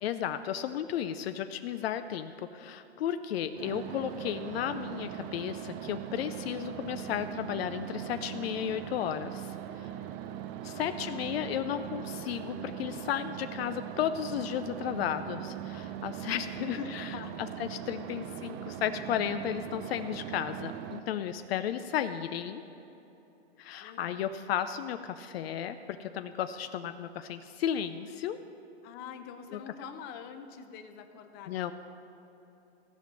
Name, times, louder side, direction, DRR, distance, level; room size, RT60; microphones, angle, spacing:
voice 1, 0.0-9.9 10.6-17.1 17.4-22.6 23.6-28.4 29.5-29.6 31.5-31.7, left 10 dB, 65° left, 10 dB, 0.6 m, -34 dB
sound 1, 3.5-21.0, right 10 dB, 25° right, 0.4 m, -40 dB
voice 2, 10.7-11.2 16.5-17.3 23.8-24.3 28.8-31.7, left 6 dB, 30° left, 8 dB, 0.8 m, -45 dB
15.5 x 5.3 x 7.4 m, 3.0 s
hypercardioid pair, 140°, 33 cm